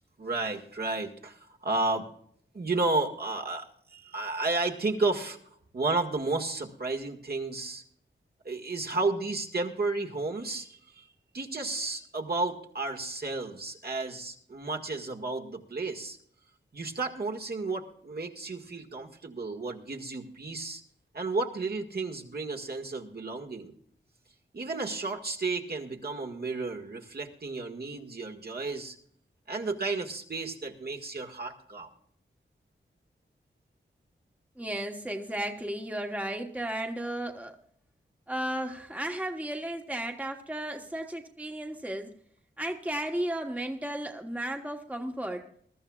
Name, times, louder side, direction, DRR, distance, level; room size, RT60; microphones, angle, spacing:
voice 1, 0.2-2.1 2.5-3.7 3.9-5.4 5.7-7.8 8.4-11.0 11.3-16.2 16.7-20.8 21.1-23.7 24.5-29.0 29.5-31.9, right 3 dB, 50° right, 0 dB, 1.9 m, -32 dB
voice 2, 34.6-37.5 38.3-42.1 42.6-45.4, right 1 dB, 5° right, 4 dB, 1.3 m, -34 dB
21.5 x 13.0 x 2.4 m, 0.64 s
wide cardioid pair, 80°, 20 cm